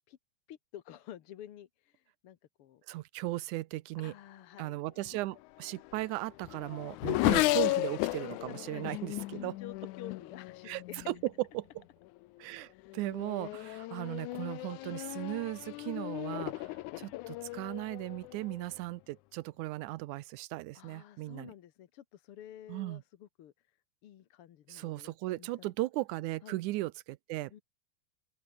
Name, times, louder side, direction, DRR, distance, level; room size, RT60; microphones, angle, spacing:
voice 1, 0.5-2.8 4.0-5.2 7.6-7.7 8.5-9.0 9.3-11.1 12.7-13.0 20.7-25.7 26.4-26.6 27.5-27.6, left 11 dB, 60° left, 1.7 m, -51 dB
voice 2, 2.9-4.1 4.6-9.5 10.7-10.8 11.1-11.2 11.6-11.7 12.4-21.5 22.7-23.0 24.7-27.6, right 18 dB, 80° right, 2.1 m, -37 dB
Race car auto racing / Accelerating revving vroom, 5.4-11.2 12.0-12.4 12.8-18.8, left 19 dB, 80° left, 2.0 m, -35 dB
open air
omnidirectional pair, 3.5 m